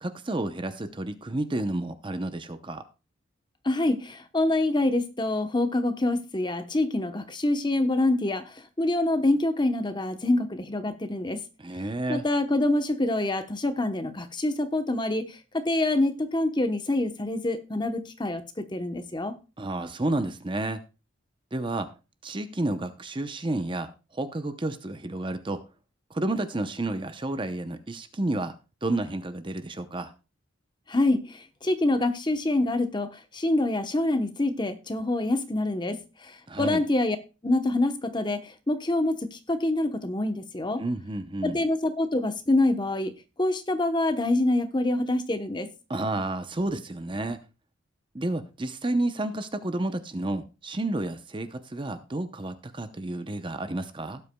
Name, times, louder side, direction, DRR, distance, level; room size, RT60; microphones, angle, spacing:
voice 1, 0.0-2.8 11.6-12.2 19.6-20.8 21.5-21.9 22.2-25.6 26.1-28.5 28.8-30.1 36.5-36.8 40.8-41.6 45.9-47.4 48.1-54.2, right 2 dB, 25° right, 0.7 m, -30 dB
voice 2, 3.6-11.4 12.1-19.3 30.9-37.2 37.4-40.8 41.4-43.1 43.4-45.7, left 2 dB, 20° left, 0.9 m, -26 dB
17.5 x 8.2 x 2.2 m
head